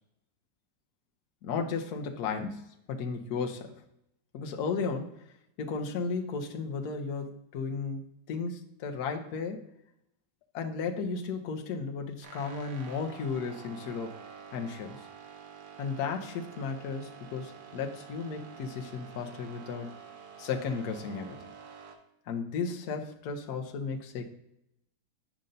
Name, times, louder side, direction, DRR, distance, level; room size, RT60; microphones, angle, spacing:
voice 1, 1.4-3.7 4.3-5.3 5.6-8.0 8.3-9.6 10.5-14.2 14.5-15.1 15.8-19.9 20.4-21.4 22.3-24.3, left 5 dB, 70° left, 3 dB, 1.2 m, -34 dB
sound 1, 12.2-22.0, right 6 dB, 45° right, 0.7 m, -48 dB
8.7 x 5.2 x 2.6 m, 0.82 s
omnidirectional pair, 1.9 m